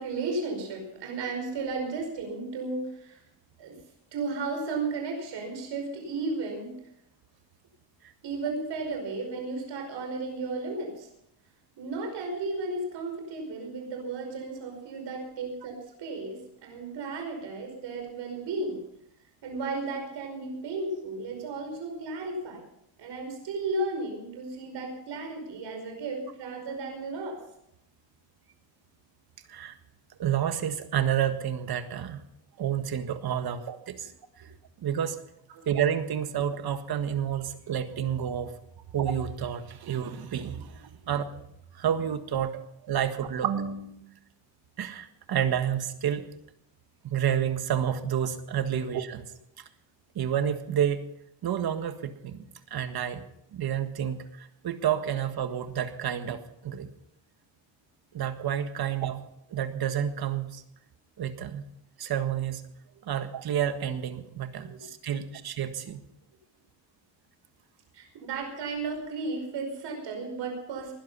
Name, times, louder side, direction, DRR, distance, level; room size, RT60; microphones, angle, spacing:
voice 1, 0.0-3.2 3.6-3.8 4.1-6.7 8.2-11.1 11.8-18.8 19.4-22.6 23.0-27.4 33.5-33.6 34.4-34.5 64.6-64.8 67.9-70.9, right 3 dB, 75° right, 2 dB, 5.3 m, -34 dB
voice 2, 30.2-32.2 32.6-34.1 34.8-35.2 35.7-38.5 38.9-41.3 41.7-42.5 42.8-44.0 44.8-46.2 47.0-49.3 50.2-51.1 51.4-52.4 52.7-53.2 53.5-56.9 58.1-59.2 59.5-60.6 61.2-61.6 62.0-62.6 63.0-66.0, right 9 dB, 55° right, 9 dB, 1.7 m, -29 dB
20.0 x 11.5 x 5.6 m, 0.75 s
cardioid pair, 130°, 44 cm